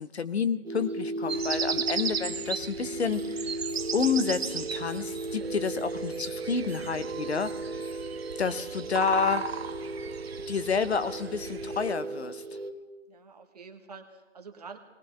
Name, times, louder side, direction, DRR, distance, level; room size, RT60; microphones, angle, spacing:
voice 1, 0.0-3.5 3.9-7.8 8.4-9.4 10.5-12.4, left 6 dB, 55° left, 13 dB, 0.7 m, -29 dB
sound 1, 0.6-12.7, right 2 dB, 70° right, 1.6 m, -36 dB
sound 2, 1.3-11.9, right 6 dB, 50° right, 0.6 m, -36 dB
sound 3, 3.1-3.4 3.6-4.6 4.9-8.1, equal, 5° left, 1.2 m, -51 dB
voice 2, 13.1-14.8, right 5 dB, 30° right, 4 dB, 1.1 m, -47 dB
19.0 x 19.0 x 3.4 m, 1.4 s
hypercardioid pair, 165°, 39 cm